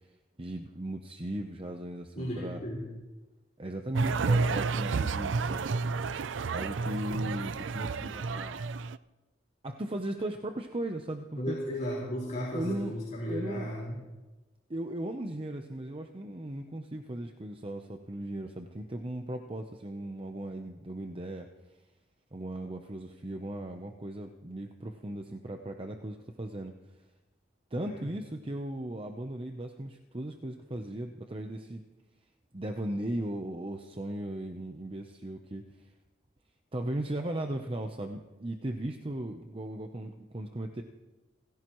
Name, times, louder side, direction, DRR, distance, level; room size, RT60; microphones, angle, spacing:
voice 1, 0.4-2.6 3.6-5.7 6.5-8.6 9.6-11.6 12.5-12.9 13.3-13.7 14.7-21.5 22.3-26.8 27.7-31.8 32.5-35.7 36.7-40.8, right 1 dB, 30° right, 4 dB, 0.8 m, -37 dB
voice 2, 2.1-2.8 11.4-14.0 27.8-28.0, equal, 40° left, -6 dB, 4.7 m, -35 dB
sound 1, 3.9-9.0, right 4 dB, 75° right, 0.5 m, -30 dB
30.0 x 15.5 x 3.1 m, 1.1 s
head